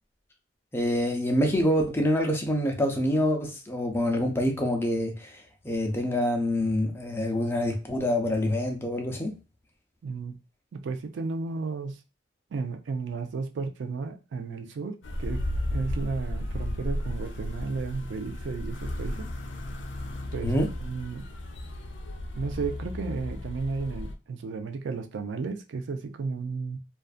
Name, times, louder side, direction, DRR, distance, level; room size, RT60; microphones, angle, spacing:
voice 1, 0.7-9.3 20.4-20.7, equal, 15° left, 0.5 m, -26 dB
voice 2, 10.0-10.4 10.7-12.0 12.5-15.4 15.7-19.3 20.3-20.5 20.8-21.2 22.3-26.8, right 4 dB, 75° right, 0.4 m, -33 dB
sound 1, 15.0-24.1, left 1 dB, 85° left, 0.4 m, -34 dB
2.4 x 2.3 x 2.4 m
head